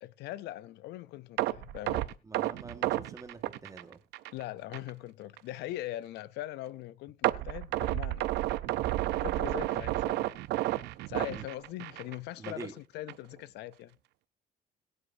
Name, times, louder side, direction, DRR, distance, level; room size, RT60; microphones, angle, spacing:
voice 1, 0.0-2.1 4.3-8.3 9.1-10.3 11.1-14.0, left 15 dB, 85° left, 0.6 m, -41 dB
sound 1, 1.4-4.4 4.7-4.9 5.4-5.5 7.2-12.1 12.4-12.6 13.1-13.2, right 16 dB, 85° right, 0.6 m, -31 dB
voice 2, 2.3-4.0 11.3-11.5 12.4-12.7, right 3 dB, 20° right, 1.6 m, -45 dB
22.0 x 7.9 x 2.7 m
cardioid pair, 110°, 17 cm